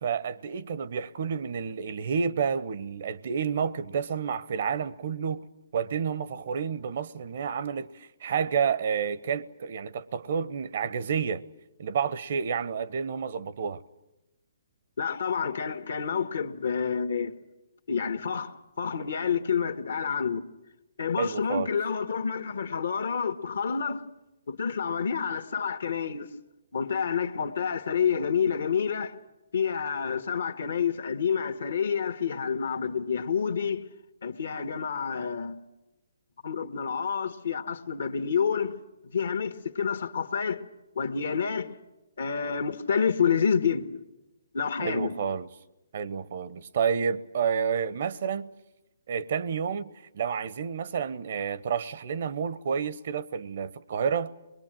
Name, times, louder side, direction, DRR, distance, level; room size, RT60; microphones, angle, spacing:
voice 1, 0.0-5.5 5.7-11.4 11.8-13.8 21.2-21.7 44.8-45.5 45.9-48.5 49.1-54.4, right 6 dB, 55° right, 0.8 m, -30 dB
voice 2, 15.0-17.3 17.9-20.4 21.0-24.1 24.5-26.3 26.7-29.1 29.5-33.8 34.2-35.6 36.4-38.8 39.1-40.6 40.9-41.7 42.2-44.0 44.5-45.1, left 6 dB, 70° left, 1.6 m, -28 dB
23.5 x 21.5 x 9.0 m
hypercardioid pair, 145°, 0 cm